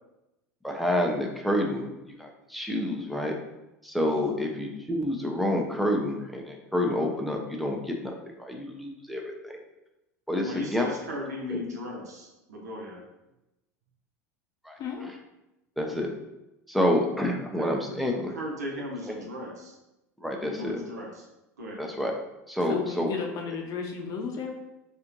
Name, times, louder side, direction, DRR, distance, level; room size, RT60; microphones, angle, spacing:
voice 1, 0.6-3.4 3.8-9.7 10.3-10.9 11.5-11.6 14.6-15.1 15.8-16.1 16.7-18.3 19.1-19.2 20.2-20.8 21.8-22.1 22.5-23.1, left 1 dB, ahead, 1 dB, 0.7 m, -28 dB
voice 2, 10.3-13.0 17.3-19.7 20.4-21.3 21.6-21.8, left 1 dB, 85° right, -2 dB, 0.9 m, -37 dB
voice 3, 14.8-15.1 22.7-24.5, left 5 dB, 45° left, 2 dB, 0.8 m, -34 dB
4.3 x 2.6 x 2.6 m, 0.92 s
hypercardioid pair, 80°, 9 cm